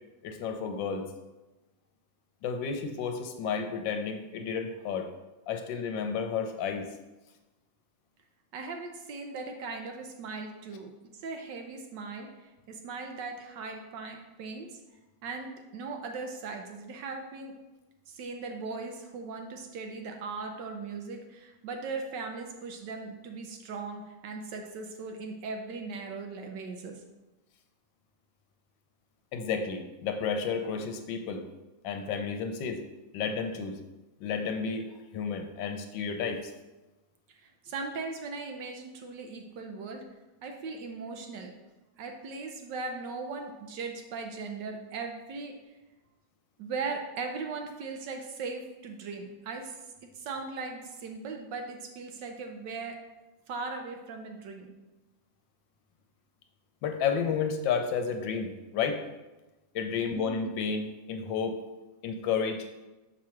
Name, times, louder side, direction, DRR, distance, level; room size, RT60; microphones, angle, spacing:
voice 1, 0.2-1.1 2.4-5.1 5.5-6.9 29.3-31.5 31.8-32.8 33.1-33.8 34.2-34.9 35.1-36.5 56.8-59.0 59.7-61.6 62.0-62.7, left 6 dB, 75° left, 6 dB, 1.3 m, -31 dB
voice 2, 8.5-14.8 15.2-17.6 18.1-27.0 37.3-40.0 40.4-41.5 42.0-45.6 46.6-49.8 50.1-53.0 53.5-54.7 59.9-60.3, right 4 dB, 70° right, 4 dB, 1.2 m, -39 dB
6.0 x 3.1 x 5.7 m, 1.1 s
omnidirectional pair, 2.2 m